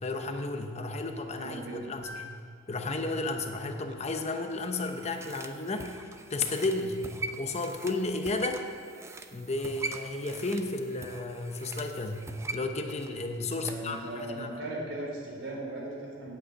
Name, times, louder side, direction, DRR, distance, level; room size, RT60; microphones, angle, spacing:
voice 1, 0.0-2.3 2.7-7.0 7.4-8.6 9.3-14.6, left 2 dB, 35° left, 5 dB, 0.8 m, -33 dB
voice 2, 1.4-1.8 13.6-16.4, right 1 dB, 70° right, -3 dB, 3.5 m, -38 dB
sound 1, 2.0-4.3 6.4-6.5, left 1 dB, 70° left, 2.4 m, -50 dB
sound 2, 4.5-13.9 14.2-14.3, right 3 dB, 15° right, 0.5 m, -42 dB
8.7 x 8.0 x 8.1 m, 2.1 s
head